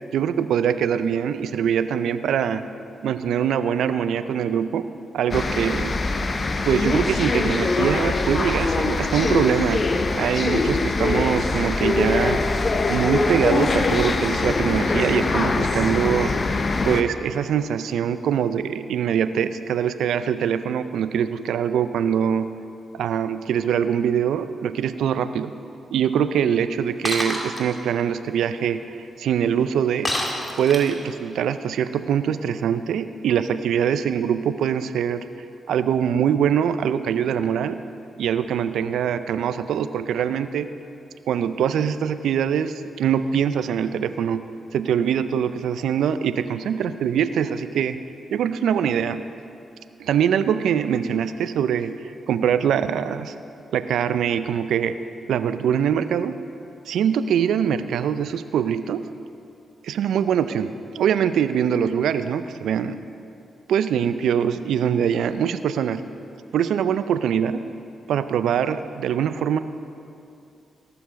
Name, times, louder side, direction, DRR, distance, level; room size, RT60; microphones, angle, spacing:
voice 1, 0.1-2.6 3.0-4.9 5.1-5.9 6.6-9.9 10.1-12.4 12.9-16.3 16.8-22.5 22.9-25.5 25.9-30.1 30.6-35.2 35.7-37.8 38.2-40.7 41.3-44.5 44.7-48.0 48.3-49.3 50.0-53.3 53.7-55.0 55.3-56.4 56.9-59.0 59.8-63.0 63.7-66.1 66.5-67.6 68.1-69.6, right 8 dB, 75° right, 12 dB, 0.4 m, -23 dB
sound 1, 5.3-17.0, left 3 dB, 45° left, 0.8 m, -23 dB
Shatter, 27.0-27.6 30.0-31.1, left 1 dB, 15° left, 2.2 m, -27 dB
18.0 x 7.1 x 5.1 m, 2.7 s
hypercardioid pair, 40°, 0 cm